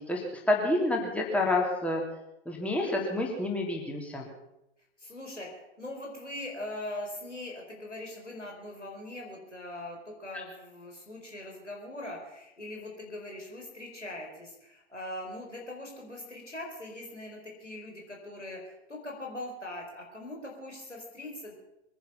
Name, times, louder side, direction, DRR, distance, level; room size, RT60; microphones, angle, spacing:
voice 1, 0.0-2.0 2.4-4.3, left 2 dB, 5° left, -1 dB, 3.3 m, -28 dB
voice 2, 5.0-21.5, left 1 dB, 85° left, 0 dB, 4.7 m, -41 dB
23.0 x 10.5 x 5.7 m, 0.87 s
figure-of-eight pair, 95°, 35 cm